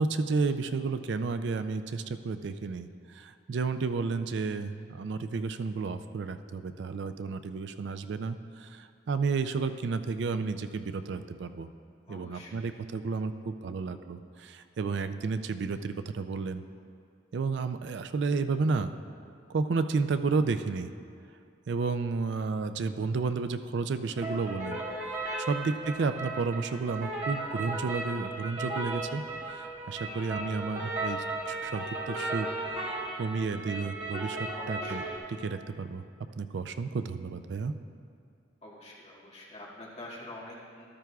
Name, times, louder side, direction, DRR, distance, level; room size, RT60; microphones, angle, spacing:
voice 1, 0.0-11.7 12.1-16.6 17.3-18.9 19.5-20.9 21.7-24.8 25.1-35.0 35.3-36.0 36.4-37.7, right 4 dB, 65° right, 10 dB, 0.4 m, -32 dB
voice 2, 12.1-12.5 25.6-25.7 34.6-35.1 38.6-40.9, left 1 dB, 35° left, -6 dB, 2.0 m, -46 dB
sound 1, 24.2-35.2, right 2 dB, 40° right, 2.0 m, -35 dB
13.5 x 12.5 x 2.3 m, 2.3 s
head